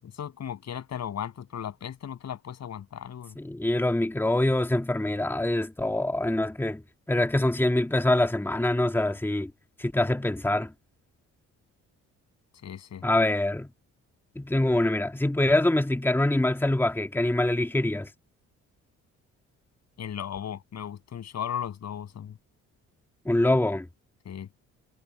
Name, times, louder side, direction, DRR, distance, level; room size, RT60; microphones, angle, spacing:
voice 1, 0.0-3.4 12.6-13.0 20.0-22.3 24.2-24.5, left 9 dB, 60° left, 7.8 m, -36 dB
voice 2, 3.4-6.8 7.1-9.5 9.8-10.7 13.0-13.7 14.4-18.1 23.3-23.9, left 1 dB, 5° left, 2.1 m, -24 dB
cardioid pair, 90°, 30 cm